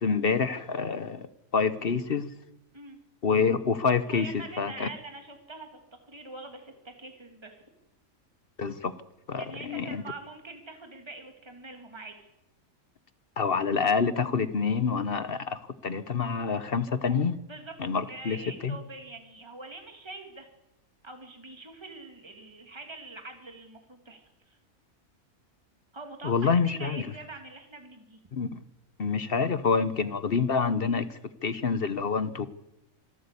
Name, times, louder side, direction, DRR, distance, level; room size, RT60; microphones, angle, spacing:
voice 1, 0.0-1.3 1.5-2.3 3.2-4.9 8.6-8.9 9.3-10.0 13.4-17.4 17.8-18.4 18.6-18.8 26.2-27.1 28.3-28.6 29.0-32.5, left 5 dB, 45° left, 13 dB, 1.1 m, -27 dB
voice 2, 4.1-5.7 6.0-7.6 9.4-12.2 17.5-20.5 21.0-24.6 25.9-28.2, right 3 dB, 20° right, 4 dB, 2.6 m, -44 dB
25.5 x 12.5 x 8.4 m, 0.87 s
omnidirectional pair, 1.4 m